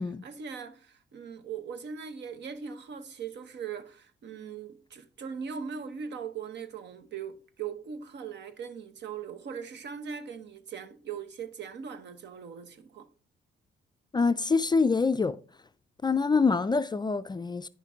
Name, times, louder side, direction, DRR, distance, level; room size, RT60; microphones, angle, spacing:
voice 1, 0.2-13.1, right 6 dB, 60° right, 1.0 m, -40 dB
voice 2, 14.1-15.4 16.0-17.7, left 4 dB, 20° left, 0.4 m, -25 dB
9.7 x 5.8 x 3.6 m
cardioid pair, 90°, 20 cm